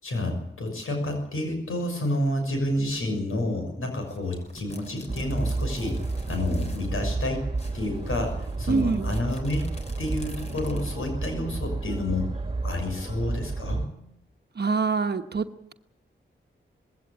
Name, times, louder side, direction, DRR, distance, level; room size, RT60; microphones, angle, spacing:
voice 1, 0.0-6.0 6.3-7.4 7.7-9.6 10.0-12.3 12.6-14.1, left 1 dB, 90° left, 4 dB, 6.5 m, -29 dB
sound 1, 3.9-7.0 7.2-7.3 7.6-11.1, left 1 dB, 30° left, 3.6 m, -47 dB
sound 2, 5.1-13.9, right 3 dB, 25° right, 2.2 m, -31 dB
voice 2, 8.7-9.1 14.6-15.7, right 4 dB, 55° right, 7 dB, 1.2 m, -26 dB
21.0 x 17.0 x 8.8 m, 0.82 s
wide cardioid pair, 150°, 21 cm